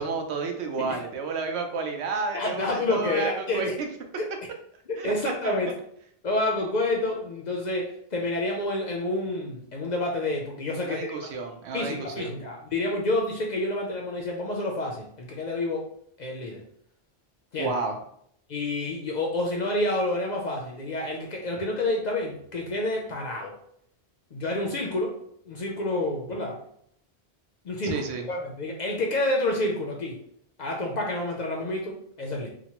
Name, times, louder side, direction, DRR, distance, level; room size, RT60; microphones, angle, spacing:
voice 1, 0.0-3.9 5.0-5.1 5.4-5.5 10.8-12.3 17.6-18.0 27.8-28.3, right 4 dB, 85° right, 4 dB, 0.8 m, -31 dB
voice 2, 2.3-3.8 4.2-4.3 4.9-5.7 6.2-11.0 11.7-15.9 16.2-16.6 17.5-17.7 18.5-23.5 24.3-25.2 25.5-26.6 27.6-30.2 30.6-32.5, left 2 dB, 55° left, 0 dB, 0.5 m, -29 dB
2.9 x 2.1 x 2.8 m, 0.69 s
omnidirectional pair, 1.1 m